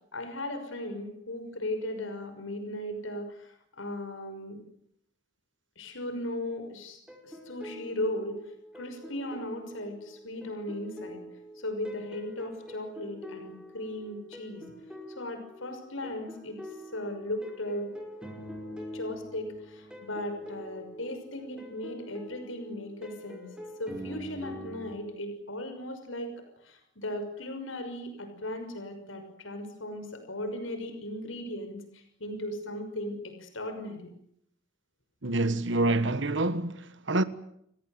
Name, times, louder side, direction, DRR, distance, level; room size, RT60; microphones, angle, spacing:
voice 1, 0.1-4.6 5.8-8.4 8.7-11.2 11.6-14.7 15.2-16.6 16.9-17.9 18.9-23.5 23.8-26.4 26.6-34.1, left 1 dB, 85° left, 6.1 m, -37 dB
sound 1, 7.1-25.0, equal, 5° right, 5.5 m, -45 dB
voice 2, 35.2-37.2, right 2 dB, 65° right, 1.5 m, -27 dB
30.0 x 18.0 x 9.5 m
head